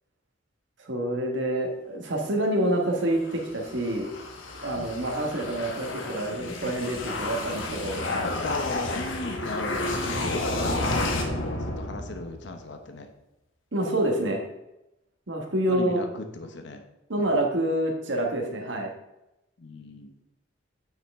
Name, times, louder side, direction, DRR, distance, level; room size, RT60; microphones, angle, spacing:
voice 1, 0.9-4.1 4.6-8.0 13.7-14.4 15.3-16.0 17.1-18.9, right 1 dB, 70° right, 1 dB, 1.5 m, -27 dB
sound 1, 3.1-12.5, left 2 dB, 85° left, 1.3 m, -31 dB
voice 2, 8.1-9.9 10.2-13.1 15.7-16.8 17.1-17.4 19.6-20.2, left 2 dB, 65° left, 6 dB, 0.9 m, -36 dB
9.0 x 5.7 x 3.6 m, 0.93 s
head